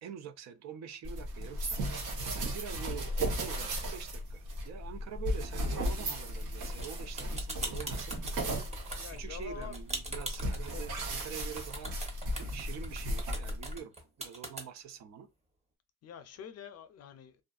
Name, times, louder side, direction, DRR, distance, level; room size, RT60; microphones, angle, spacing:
voice 1, 0.0-1.8 2.4-8.1 9.1-11.9 12.5-15.3, right 8 dB, 60° right, 0.4 m, -45 dB
sound 1, 1.0-13.8, equal, 80° right, 1.0 m, -36 dB
voice 2, 2.8-3.1 9.0-9.7 10.7-10.8 16.0-17.4, left 8 dB, 55° left, 0.5 m, -47 dB
sound 2, 6.7-14.6, right 2 dB, 20° right, 0.9 m, -41 dB
2.5 x 2.4 x 2.4 m
cardioid pair, 90°, 30 cm